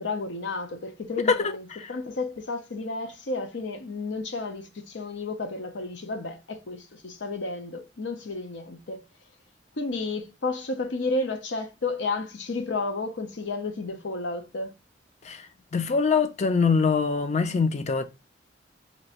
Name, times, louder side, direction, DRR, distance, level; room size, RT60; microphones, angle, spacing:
voice 1, 0.0-9.0 9.8-14.7, left 3 dB, 75° left, 0.7 m, -32 dB
voice 2, 15.7-18.0, left 5 dB, 40° left, 0.4 m, -23 dB
2.9 x 2.6 x 4.2 m
head